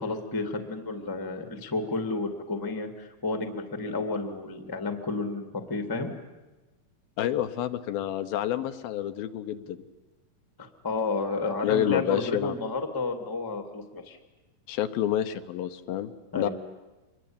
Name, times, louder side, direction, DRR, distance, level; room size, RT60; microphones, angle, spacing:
voice 1, 0.0-6.1 10.6-14.2 16.3-16.5, left 3 dB, 10° left, 6 dB, 1.3 m, -31 dB
voice 2, 7.2-9.8 11.6-12.6 14.7-16.5, left 11 dB, 75° left, 9 dB, 2.8 m, -29 dB
26.0 x 21.5 x 8.8 m, 1.2 s
omnidirectional pair, 4.4 m